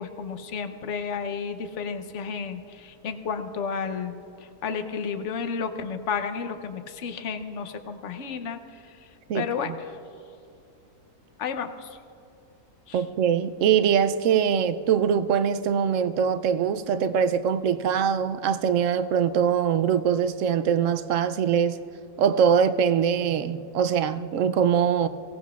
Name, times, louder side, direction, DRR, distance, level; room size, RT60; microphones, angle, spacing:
voice 1, 0.0-9.0 9.3-10.0 11.4-12.0 12.9-13.0, left 6 dB, 60° left, 8 dB, 1.0 m, -32 dB
voice 2, 9.3-9.7 12.9-21.8 22.2-25.1, right 7 dB, 70° right, 11 dB, 0.9 m, -23 dB
23.5 x 17.5 x 2.4 m, 2.5 s
omnidirectional pair, 1.6 m